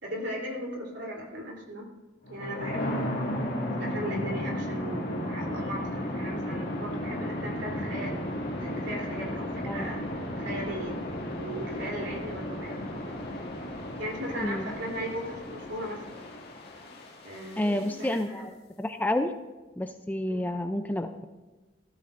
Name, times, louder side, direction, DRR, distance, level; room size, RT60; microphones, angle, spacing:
voice 1, 0.0-1.9 2.3-3.2 3.8-8.2 8.6-11.0 11.4-12.9 14.0-16.0 17.2-18.4 20.3-20.4, equal, 65° right, 0 dB, 3.5 m, -37 dB
sound 1, 2.2-18.2, left 1 dB, 50° left, 2.3 m, -34 dB
voice 2, 14.4-14.7 17.6-18.5 18.8-19.3 19.8-21.2, left 1 dB, 10° left, 7 dB, 0.4 m, -29 dB
16.0 x 13.5 x 2.6 m, 1.2 s
head